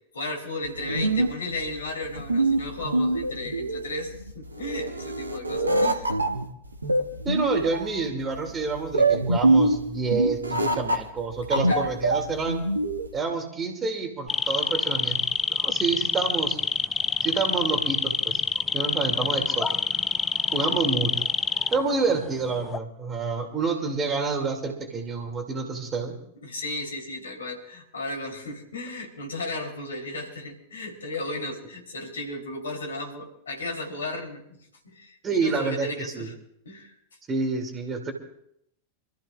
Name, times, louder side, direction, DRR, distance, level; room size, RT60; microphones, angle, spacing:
voice 1, 0.1-6.2 11.7-11.9 20.6-20.8 26.4-34.6 34.8-36.3 36.6-36.9, left 2 dB, 70° left, 3 dB, 3.6 m, -35 dB
sound 1, 0.6-13.2, right 2 dB, 80° right, 1.3 m, -25 dB
voice 2, 7.2-12.6 13.1-15.2 15.6-16.6 17.2-18.4 18.7-19.7 20.5-21.1 21.7-26.1 35.2-36.3 37.3-38.1, right 4 dB, 20° right, 4 dB, 2.7 m, -28 dB
sound 2, 14.3-22.2 22.4-22.8, left 5 dB, 15° left, 0.4 m, -26 dB
27.0 x 14.0 x 2.6 m, 0.75 s
figure-of-eight pair, 90°, 0 cm